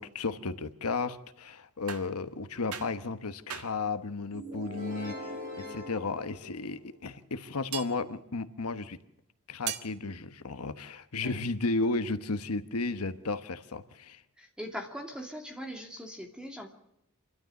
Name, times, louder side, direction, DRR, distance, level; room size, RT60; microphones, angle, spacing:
voice 1, 0.0-5.4 5.7-9.0 9.5-14.2, left 3 dB, 85° left, 10 dB, 1.1 m, -34 dB
sound 1, 1.9-2.2 2.7-3.1 3.5-3.9 6.1-6.3 7.7-8.0 9.7-9.9, right 9 dB, 90° right, 1.5 m, -38 dB
sound 2, 4.3-7.1, left 1 dB, 40° right, 5.7 m, -42 dB
voice 2, 14.4-16.7, equal, 5° right, 3 dB, 2.5 m, -41 dB
27.5 x 12.5 x 7.7 m, 0.85 s
head